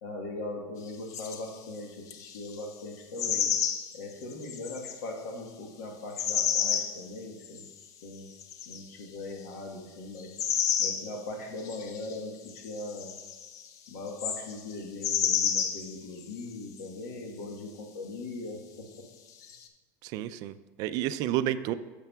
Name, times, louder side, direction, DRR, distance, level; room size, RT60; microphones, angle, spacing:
voice 1, 0.0-3.5 3.9-7.6 8.0-8.3 8.6-10.3 10.8-13.1 13.9-19.1, left 2 dB, 75° left, 2 dB, 1.3 m, -40 dB
sound 1, 1.1-1.5 2.1-2.6 3.2-5.0 6.2-7.0 7.4-7.8 8.4-8.8 10.2-11.1 11.6-12.2 12.5-14.7 15.0-16.5 16.8-16.9 19.4-19.7, left 8 dB, 40° left, 0.6 m, -30 dB
voice 2, 20.0-21.7, right 12 dB, 50° right, 13 dB, 0.3 m, -30 dB
10.5 x 6.7 x 2.3 m, 1.2 s
supercardioid pair, 140°, 9 cm